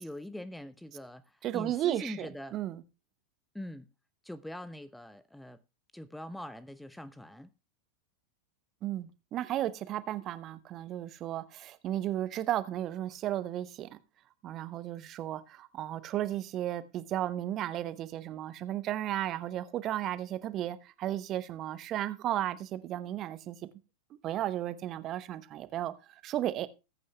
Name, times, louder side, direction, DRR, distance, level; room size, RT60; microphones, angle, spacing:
voice 1, 0.0-2.5 3.5-3.9 4.2-5.6 5.9-7.5, left 1 dB, 5° left, 0.6 m, -43 dB
voice 2, 1.4-2.8 8.8-14.0 14.4-23.6 24.2-26.7, right 12 dB, 35° right, 0.9 m, -34 dB
20.0 x 9.3 x 2.3 m
figure-of-eight pair, 90°, 0 cm